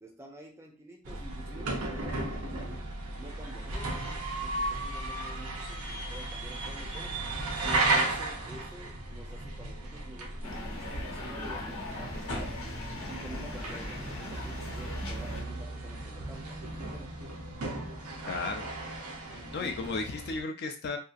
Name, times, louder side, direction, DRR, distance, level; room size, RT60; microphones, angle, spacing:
voice 1, 0.0-2.9 3.2-4.1 4.4-7.2 7.6-12.6 13.1-17.1 19.3-19.8, right 1 dB, 10° right, 1 dB, 0.5 m, -49 dB
sound 1, 1.0-20.4, right 2 dB, 80° right, 0.7 m, -35 dB
sound 2, 10.4-15.4, left 1 dB, 70° left, 0.8 m, -39 dB
voice 2, 18.3-18.7 19.2-21.0, left 4 dB, 50° left, 4 dB, 0.4 m, -34 dB
2.8 x 2.3 x 2.4 m, 0.33 s
head